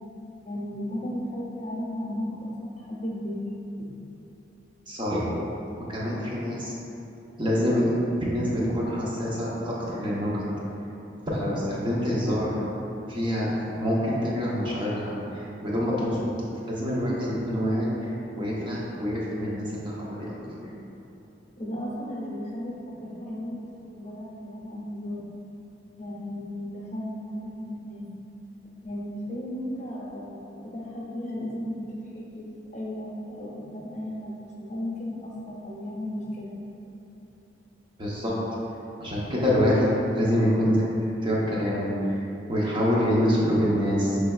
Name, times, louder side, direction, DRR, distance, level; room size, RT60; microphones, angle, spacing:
voice 1, 0.4-3.5 3.8-3.9 21.6-23.7 23.9-25.2 26.0-28.1 28.8-31.9 32.3-36.5, left 1 dB, 40° left, -5 dB, 0.8 m, -35 dB
voice 2, 4.9-5.2 5.8-6.7 7.4-7.9 8.3-10.4 11.3-12.5 13.1-16.3 16.7-17.9 18.4-20.7 38.0-38.3 39.0-40.8 41.2-42.2 42.5-44.2, equal, 25° right, -6 dB, 0.8 m, -26 dB
5.6 x 3.2 x 2.3 m, 3.0 s
head